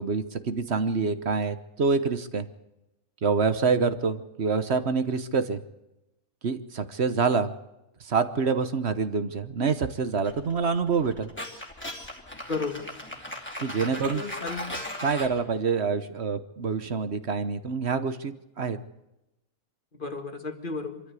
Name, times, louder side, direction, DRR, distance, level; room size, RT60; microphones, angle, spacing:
voice 1, 0.0-2.5 3.2-5.6 6.4-7.5 8.0-11.3 13.6-14.2 15.0-18.8, right 5 dB, 50° right, 12 dB, 1.2 m, -26 dB
sound 1, 10.2-15.4, left 1 dB, 5° left, 2.8 m, -38 dB
voice 2, 12.5-12.9 13.8-14.8 20.0-21.0, left 4 dB, 35° left, 6 dB, 1.9 m, -33 dB
24.5 x 13.5 x 8.3 m, 0.93 s
omnidirectional pair, 1.6 m